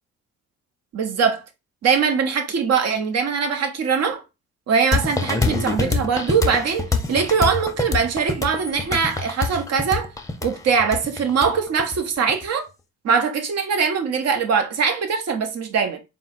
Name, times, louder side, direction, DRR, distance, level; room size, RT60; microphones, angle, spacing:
voice 1, 0.9-1.4 1.8-4.2 4.7-10.1 10.4-12.7 13.0-16.0, right 6 dB, 55° right, 0.9 m, -22 dB
sound 1, 4.9-12.5, left 3 dB, 10° left, 0.7 m, -25 dB
4.3 x 2.0 x 4.1 m
cardioid pair, 90°, 30 cm